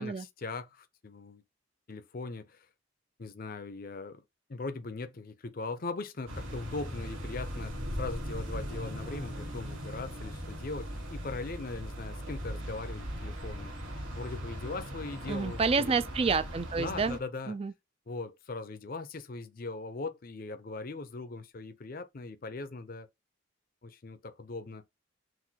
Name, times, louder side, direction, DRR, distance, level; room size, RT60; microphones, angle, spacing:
voice 1, 0.0-1.4 1.9-2.7 3.2-4.2 4.5-13.8 14.1-16.0 16.8-17.6 18.1-23.1 23.8-24.8, left 3 dB, 45° left, 0.5 m, -40 dB
sound 1, 6.3-17.2, equal, 80° right, 2.1 m, -39 dB
voice 2, 15.3-17.2 17.5-17.7, right 4 dB, 30° right, 0.3 m, -29 dB
6.0 x 2.6 x 2.8 m
head